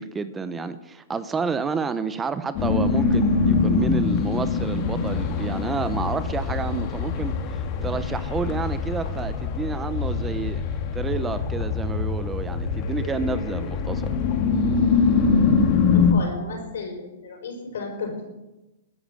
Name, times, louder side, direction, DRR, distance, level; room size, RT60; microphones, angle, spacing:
voice 1, 0.0-10.6 10.9-14.2, right 5 dB, 15° right, 12 dB, 0.8 m, -30 dB
sound 1, 2.6-16.1, left 5 dB, 40° left, 1.8 m, -23 dB
voice 2, 15.9-18.3, left 4 dB, 75° left, 3 dB, 5.7 m, -34 dB
15.0 x 9.4 x 8.3 m, 1.0 s
hypercardioid pair, 140°, 0 cm